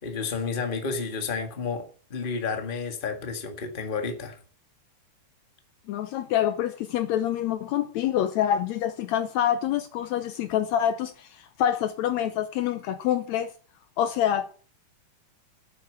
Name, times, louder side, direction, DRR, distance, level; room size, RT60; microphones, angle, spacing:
voice 1, 0.0-4.4, left 5 dB, 20° left, 1.4 m, -31 dB
voice 2, 5.9-13.5 14.0-14.5, left 10 dB, 75° left, 1.8 m, -26 dB
8.9 x 8.8 x 8.0 m
omnidirectional pair, 3.5 m